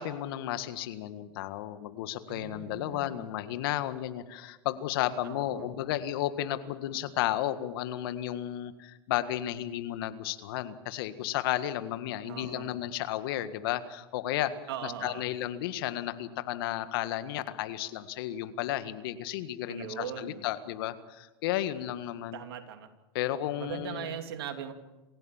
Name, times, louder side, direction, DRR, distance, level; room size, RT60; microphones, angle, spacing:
voice 1, 0.0-14.5 14.8-22.4 23.1-24.1, left 13 dB, 70° left, 11 dB, 1.8 m, -33 dB
voice 2, 2.3-3.4 5.2-5.7 12.2-12.7 14.7-15.3 19.7-20.4 22.3-22.9 23.6-24.7, right 8 dB, 80° right, 6 dB, 3.0 m, -40 dB
27.5 x 16.0 x 7.4 m, 1.1 s
hypercardioid pair, 100°, 13 cm